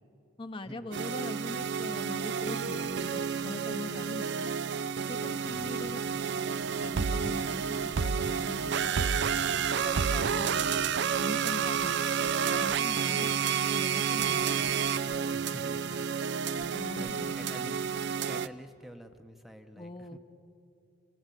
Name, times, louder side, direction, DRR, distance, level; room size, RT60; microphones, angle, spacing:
voice 1, 0.4-4.5 5.1-6.4 6.8-9.1 9.8-10.8 11.2-12.0 12.5-13.4 13.7-14.5 16.6-17.7 19.8-20.2, left 1 dB, 25° left, 7 dB, 0.8 m, -42 dB
sound 1, 0.9-18.5, right 7 dB, 60° right, 0.5 m, -30 dB
sound 2, 1.4-19.2, left 2 dB, 90° left, 1.3 m, -58 dB
voice 2, 5.5-5.8 15.3-16.0 16.6-17.8 18.2-20.2, equal, ahead, 6 dB, 0.8 m, -48 dB
sound 3, 7.8-17.4, right 2 dB, 85° right, 1.2 m, -54 dB
29.5 x 18.0 x 9.1 m, 2.7 s
head